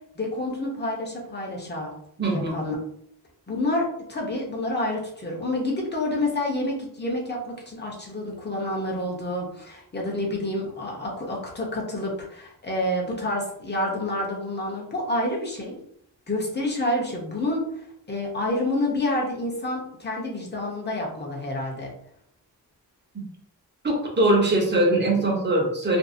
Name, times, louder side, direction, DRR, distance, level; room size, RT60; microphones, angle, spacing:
voice 1, 0.2-1.9 2.3-2.8 3.5-15.8 16.3-17.7 18.1-21.9, left 1 dB, 25° left, -2 dB, 0.8 m, -28 dB
voice 2, 2.2-2.6 23.8-26.0, right 1 dB, 25° right, -2 dB, 0.9 m, -21 dB
2.6 x 2.6 x 2.6 m, 0.71 s
wide cardioid pair, 110°, 38 cm